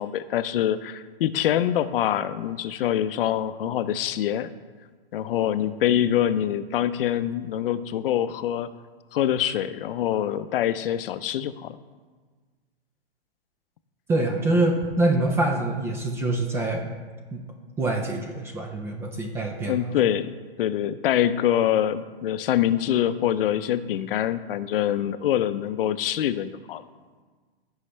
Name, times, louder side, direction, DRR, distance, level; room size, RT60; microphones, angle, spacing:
voice 1, 0.0-4.5 5.1-8.7 9.1-11.8 19.6-26.8, left 11 dB, 65° left, 13 dB, 0.6 m, -25 dB
voice 2, 14.1-16.9 17.3-17.4 17.8-19.9, right 2 dB, 10° right, 3 dB, 0.3 m, -25 dB
15.0 x 5.6 x 3.2 m, 1.4 s
hypercardioid pair, 140°, 30 cm